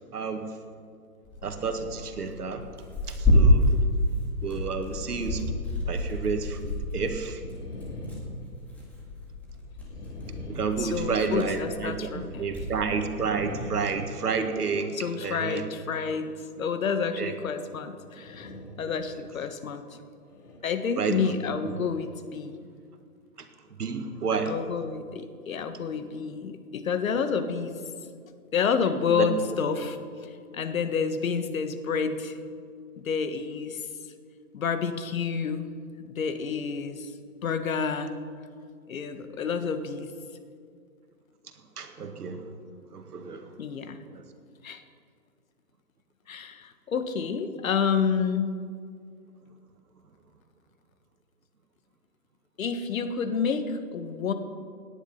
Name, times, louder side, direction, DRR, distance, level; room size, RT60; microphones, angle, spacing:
voice 1, 0.1-0.5 1.4-2.6 3.1-3.8 4.4-5.5 5.9-7.4 10.5-15.6 17.2-17.3 21.0-21.3 21.6-21.8 23.8-24.5 29.1-29.3 41.8-42.4 42.9-43.5 44.1-44.2, right 5 dB, 85° right, 6 dB, 2.0 m, -30 dB
Tearing, 1.2-13.9, left 1 dB, 5° left, 2.0 m, -29 dB
sound 1, 5.0-5.8 6.2-6.3 7.3-9.2 9.8-11.5 13.0-14.7 18.0-18.9 19.3-19.5 20.2-20.6, left 1 dB, 90° left, 3.8 m, -42 dB
voice 2, 10.8-12.5 14.9-16.3 16.6-18.5 18.8-19.8 20.6-22.6 24.4-27.8 28.5-30.0 30.5-32.4 33.0-33.8 34.5-35.7 36.0-37.1 37.4-38.1 38.9-40.1 43.6-44.0 44.6-44.8 46.3-48.5 52.6-54.3, left 6 dB, 65° left, 9 dB, 1.5 m, -29 dB
18.0 x 10.0 x 5.7 m, 2.2 s
hypercardioid pair, 160°, 45 cm